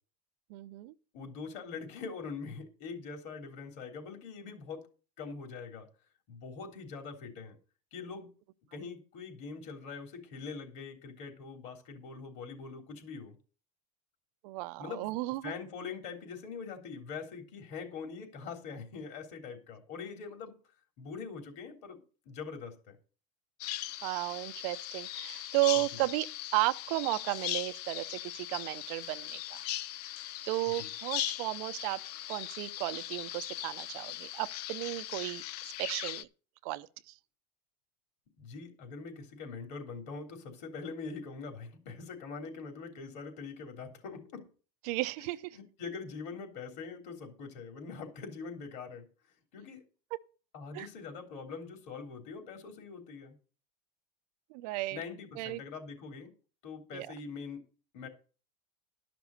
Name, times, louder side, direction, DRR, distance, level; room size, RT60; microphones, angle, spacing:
voice 1, 0.5-0.9 14.4-15.5 24.0-29.7 30.5-32.0 32.3-36.3 36.6-37.1 44.8-45.6 50.7-50.9 54.5-55.0 55.4-55.6 56.9-57.1, right 19 dB, 65° right, 0.7 m, -34 dB
voice 2, 1.1-4.9 5.2-5.9 6.3-7.6 7.9-8.3 8.7-13.4 14.8-15.2 15.4-20.5 21.0-23.0 25.9-26.0 30.8-30.9 38.4-44.5 45.5-49.1 49.5-49.8 50.5-53.4 54.9-56.3 56.6-57.6 57.9-58.1, left 5 dB, 55° left, 3.5 m, -43 dB
Bird vocalization bird call bird song, 23.6-36.2, left 14 dB, 80° left, 0.6 m, -39 dB
12.0 x 6.0 x 6.5 m
supercardioid pair, 120°, 20 cm